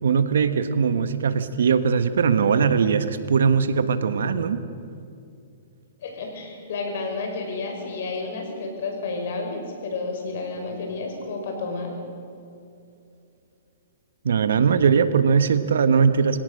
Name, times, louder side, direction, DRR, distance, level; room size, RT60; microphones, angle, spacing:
voice 1, 0.0-4.6 14.2-16.4, right 6 dB, 85° right, 12 dB, 1.3 m, -20 dB
voice 2, 6.0-11.9, left 3 dB, 65° left, 3 dB, 5.6 m, -31 dB
24.5 x 16.5 x 6.6 m, 2.6 s
hypercardioid pair, 145°, 0 cm